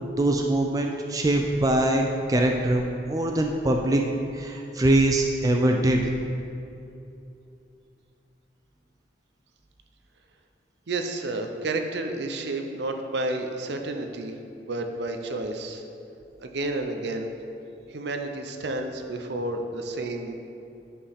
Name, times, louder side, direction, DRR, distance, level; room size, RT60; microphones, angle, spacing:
voice 1, 0.2-4.0 4.3-6.1, right 1 dB, 20° right, 2 dB, 0.3 m, -23 dB
voice 2, 10.9-15.8 16.4-17.3 17.9-20.4, right 2 dB, 70° right, 5 dB, 0.6 m, -31 dB
10.0 x 4.5 x 3.6 m, 2.7 s
head